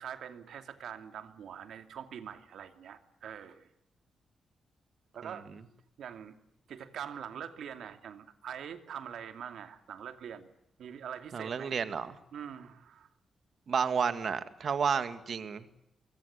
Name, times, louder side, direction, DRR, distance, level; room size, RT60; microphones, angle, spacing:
voice 1, 0.0-3.7 5.1-5.5 6.0-6.4 6.7-10.5 10.8-11.8 12.3-13.1, right 8 dB, 70° right, 8 dB, 2.7 m, -44 dB
voice 2, 11.3-12.2 13.7-15.7, right 6 dB, 45° right, 10 dB, 2.0 m, -31 dB
25.0 x 23.0 x 8.3 m, 0.78 s
wide cardioid pair, 175°, 0 cm